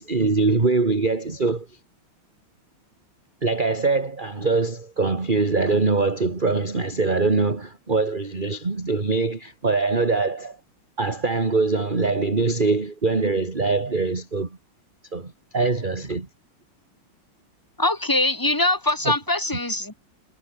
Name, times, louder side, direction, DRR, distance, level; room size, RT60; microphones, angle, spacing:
voice 1, 0.0-1.7 3.4-10.6 11.0-14.6 15.1-16.3 19.0-19.1, right 3 dB, 25° right, 2.3 m, -23 dB
voice 2, 17.8-20.0, left 2 dB, 10° left, 2.5 m, -22 dB
omnidirectional pair, 2.3 m